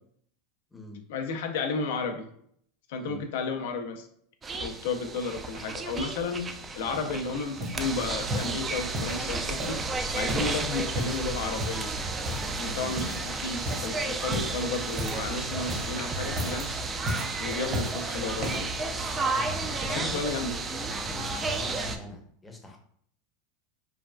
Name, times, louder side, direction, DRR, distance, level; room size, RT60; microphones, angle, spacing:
voice 1, 1.1-2.3 2.9-4.1 4.6-6.5 6.7-9.8 10.1-11.9 12.6-16.8 17.4-18.8 19.9-20.5, left 4 dB, 75° left, 5 dB, 0.5 m, -33 dB
sound 1, 4.4-22.0, right 3 dB, 25° right, 0.3 m, -32 dB
sound 2, 6.5-7.2 7.6-7.9 8.3-9.2 9.6-10.6 10.8-11.2 11.6-11.9 12.2-12.7 13.0-13.3 13.6-13.9 14.3-15.3 15.6-16.0 16.3-16.7 17.1-18.0 18.4-18.8 19.4-19.5, equal, 40° right, 1.0 m, -34 dB
voice 2, 19.3-20.3 20.9-22.8, left 2 dB, 10° left, 2 dB, 0.7 m, -43 dB
3.2 x 2.3 x 2.2 m, 0.64 s
hypercardioid pair, 105°, 0 cm